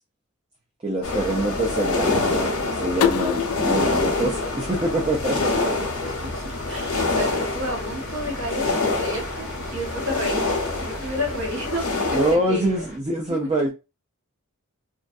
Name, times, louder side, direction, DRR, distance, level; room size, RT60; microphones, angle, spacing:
voice 1, 0.8-5.8 12.1-13.7, right 1 dB, 25° right, 0.4 m, -25 dB
sound 1, 1.0-12.3, left 3 dB, 70° left, 0.9 m, -26 dB
sound 2, 3.0-5.8, left 8 dB, 90° left, 0.3 m, -28 dB
sound 3, 4.0-13.0, equal, 5° right, 0.9 m, -41 dB
voice 2, 6.1-12.8 13.4-13.5, left 1 dB, 65° right, 1.3 m, -31 dB
2.4 x 2.1 x 2.5 m
head